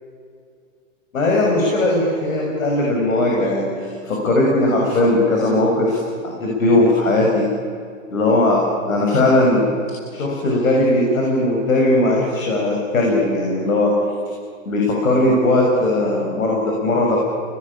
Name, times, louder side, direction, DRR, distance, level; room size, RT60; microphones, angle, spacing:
voice 1, 1.1-6.0 6.2-7.5 8.1-8.6 8.9-9.6 10.1-13.9 14.6-17.2, left 2 dB, 85° left, -1 dB, 6.6 m, -18 dB
29.5 x 19.5 x 10.0 m, 2.2 s
hypercardioid pair, 175°, 39 cm